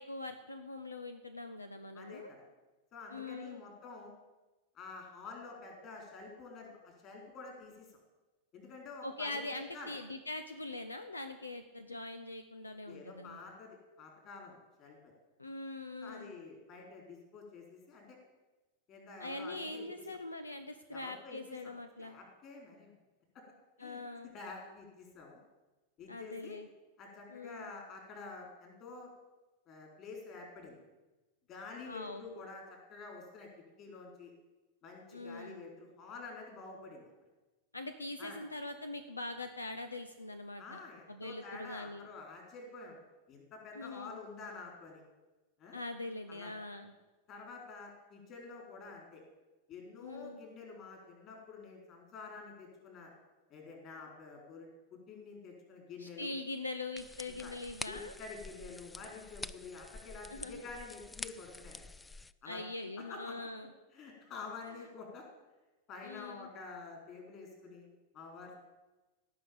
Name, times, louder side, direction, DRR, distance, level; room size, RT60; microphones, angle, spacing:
voice 1, 0.0-2.3 3.1-3.6 9.0-13.4 15.4-16.3 19.2-22.2 23.8-24.3 26.1-26.7 27.3-27.7 31.9-32.2 35.1-35.6 37.7-40.8 41.1-42.1 43.7-44.2 45.7-46.9 50.0-50.4 56.0-58.1 60.3-60.5 62.4-63.7 66.0-66.5, left 2 dB, 80° left, 9 dB, 0.8 m, -42 dB
voice 2, 1.9-2.4 2.9-4.1 4.7-7.9 8.5-9.4 9.7-9.9 12.9-15.1 16.0-18.2 18.9-20.0 20.9-21.7 22.0-22.9 23.3-23.4 23.8-25.4 26.0-26.6 27.0-29.1 29.7-30.8 31.5-33.5 33.8-34.3 34.8-37.1 38.2-38.4 40.6-43.0 43.3-45.0 45.6-45.8 46.3-46.5 47.3-49.2 49.7-53.1 53.5-56.3 57.4-57.5 57.9-61.8 62.4-62.6 63.0-63.5 63.9-65.2 65.9-67.9 68.1-68.6, left 4 dB, 35° left, 1 dB, 4.4 m, -49 dB
sound 1, 57.0-62.3, left 3 dB, 10° left, 0.4 m, -47 dB
16.5 x 6.4 x 8.8 m, 1.1 s
figure-of-eight pair, 90°, 0 cm